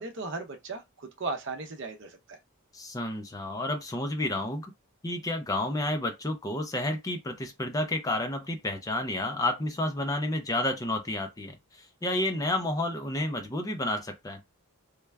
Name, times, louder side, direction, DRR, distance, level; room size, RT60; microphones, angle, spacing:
voice 1, 0.0-2.4, right 3 dB, 55° right, 0.6 m, -36 dB
voice 2, 2.7-4.7 5.0-14.4, left 1 dB, 15° left, 0.4 m, -30 dB
3.3 x 2.2 x 3.3 m
head